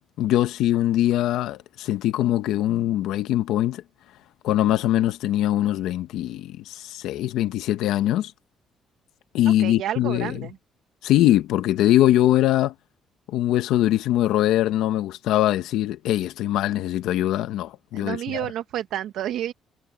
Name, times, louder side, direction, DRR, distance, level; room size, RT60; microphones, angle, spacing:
voice 1, 0.2-3.8 4.4-8.3 9.3-10.5 11.0-12.7 13.3-18.5, left 13 dB, 90° left, 1.2 m, -22 dB
voice 2, 9.5-10.6 17.9-19.5, right 12 dB, 70° right, 1.0 m, -30 dB
cardioid pair, 155°, 0 cm